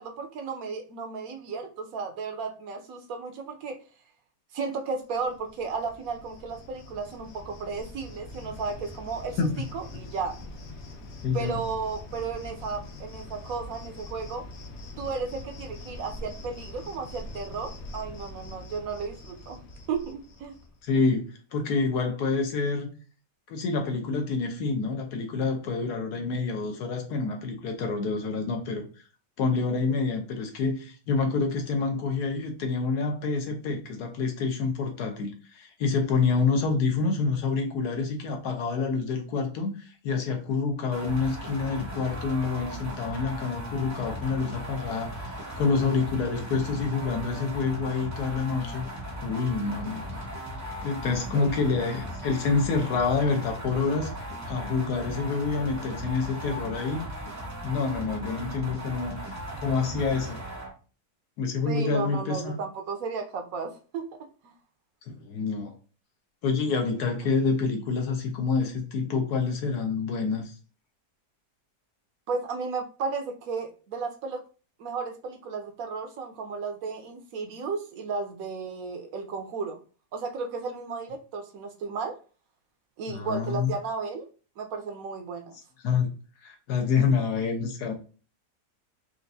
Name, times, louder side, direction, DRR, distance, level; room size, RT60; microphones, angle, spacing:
voice 1, 0.0-3.8 4.5-9.4 9.7-10.4 11.3-14.4 15.0-19.6 19.9-20.6 51.3-51.8 61.6-64.0 64.4-64.5 72.3-74.4 74.8-79.8 80.1-82.2 83.0-84.3 84.6-85.5, right 4 dB, 70° right, 1.0 m, -34 dB
Cricket, 5.1-20.8, left 2 dB, 60° left, 0.7 m, -43 dB
voice 2, 11.2-11.6 20.8-21.2 21.5-22.9 23.5-28.9 29.4-48.8 49.2-50.4 50.8-54.1 54.5-57.1 57.6-59.2 59.6-60.4 61.4-62.6 65.1-65.7 66.4-70.5 83.1-83.7 85.8-86.1 86.4-87.9, left 4 dB, 80° left, 1.3 m, -27 dB
sound 1, 40.9-60.7, equal, 20° right, 0.4 m, -37 dB
4.5 x 2.5 x 2.6 m
omnidirectional pair, 1.7 m